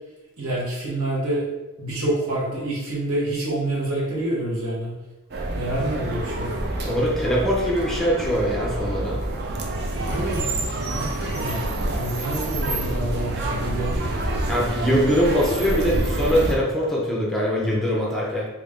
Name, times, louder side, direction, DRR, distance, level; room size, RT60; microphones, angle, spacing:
voice 1, 0.4-1.5 1.8-4.9 5.5-6.5 10.1-10.5 10.9-11.6 11.9-14.0, right 1 dB, 75° right, -5 dB, 1.1 m, -27 dB
sound 1, 5.3-16.5, right 1 dB, 50° right, 0.5 m, -27 dB
voice 2, 6.8-9.2 14.5-18.5, equal, ahead, -4 dB, 0.5 m, -22 dB
3.1 x 2.5 x 3.5 m, 1.1 s
head